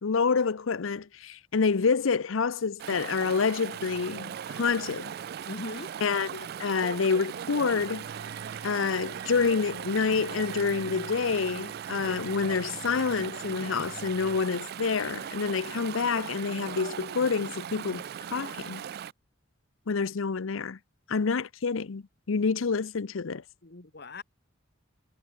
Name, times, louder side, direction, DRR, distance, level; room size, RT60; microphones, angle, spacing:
voice 1, 0.0-5.1 6.0-8.1 8.6-18.0 18.3-18.8 19.9-20.8 21.1-23.4, left 5 dB, 80° left, 0.6 m, -28 dB
Chatter / Stream, 2.8-19.1, right 8 dB, 50° right, 0.3 m, -39 dB
sound 1, 3.7-14.4, right 5 dB, 85° right, 1.0 m, -49 dB
voice 2, 5.5-5.9 23.6-24.2, left 2 dB, 55° left, 1.6 m, -39 dB
head